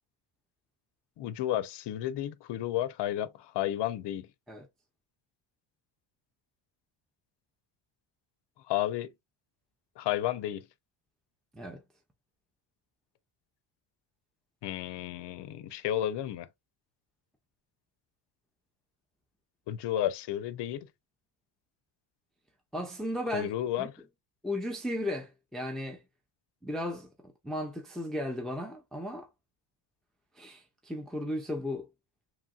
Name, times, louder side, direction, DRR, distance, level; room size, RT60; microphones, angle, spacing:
voice 1, 1.2-4.3 8.7-9.1 10.0-10.6 14.6-16.5 19.7-20.9 23.3-23.9, left 12 dB, 60° left, 0.5 m, -32 dB
voice 2, 22.7-23.5 23.8-23.9 24.4-26.0 26.6-27.1 27.4-29.3 30.4-31.9, left 1 dB, ahead, 0.5 m, -35 dB
3.0 x 2.6 x 2.3 m
cardioid pair, 90°, 49 cm